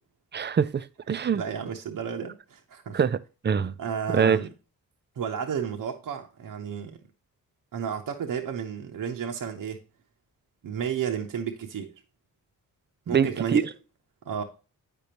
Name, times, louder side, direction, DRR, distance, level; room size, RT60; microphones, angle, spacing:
voice 1, 0.3-1.4 2.9-3.2 3.4-3.7 4.1-4.4 13.1-13.6, right 7 dB, 30° right, 0.4 m, -24 dB
voice 2, 1.1-3.0 3.8-4.5 5.2-7.0 7.7-9.8 10.6-11.9 13.1-13.7 14.3-14.4, right 7 dB, 60° right, 0.8 m, -32 dB
8.2 x 5.2 x 2.9 m
supercardioid pair, 45°, 37 cm